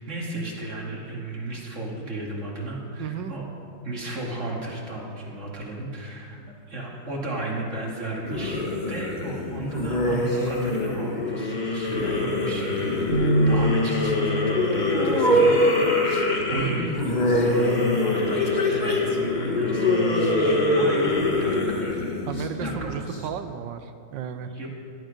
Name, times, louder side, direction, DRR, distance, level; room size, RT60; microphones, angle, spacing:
voice 1, 0.0-3.5 3.8-6.4 6.7-16.1 16.5-21.8 22.6-23.0 24.4-24.7, right 2 dB, 40° right, -2 dB, 2.5 m, -34 dB
voice 2, 3.0-3.3 16.5-17.1 22.3-24.5, right 9 dB, 75° right, 10 dB, 1.4 m, -33 dB
sound 1, 8.3-23.2, left 2 dB, 25° left, 1.3 m, -24 dB
sound 2, 13.1-19.3, right 1 dB, 45° left, 2.9 m, -30 dB
17.0 x 12.0 x 5.1 m, 2.5 s
omnidirectional pair, 2.0 m